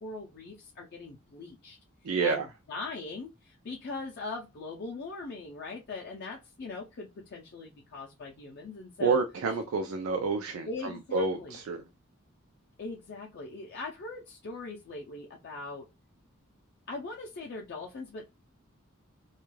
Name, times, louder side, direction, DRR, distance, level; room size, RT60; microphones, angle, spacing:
voice 1, 0.0-1.8 2.2-9.2 10.7-11.6 12.8-15.9 16.9-18.2, left 3 dB, 55° left, 0.4 m, -41 dB
voice 2, 2.0-2.5 9.0-10.7 11.1-11.8, right 4 dB, 85° right, 0.4 m, -28 dB
2.3 x 2.2 x 3.1 m
head